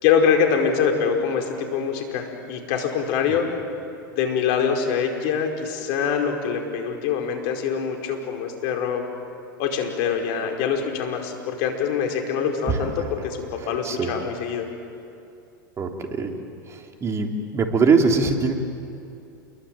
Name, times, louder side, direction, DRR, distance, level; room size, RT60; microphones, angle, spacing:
voice 1, 0.0-3.5 4.1-9.0 9.6-14.7, left 7 dB, 55° left, 3 dB, 4.9 m, -24 dB
voice 2, 13.7-14.1 15.8-16.3 16.7-18.5, right 4 dB, 25° right, 3 dB, 3.5 m, -22 dB
29.0 x 22.5 x 9.0 m, 2.6 s
hypercardioid pair, 105°, 11 cm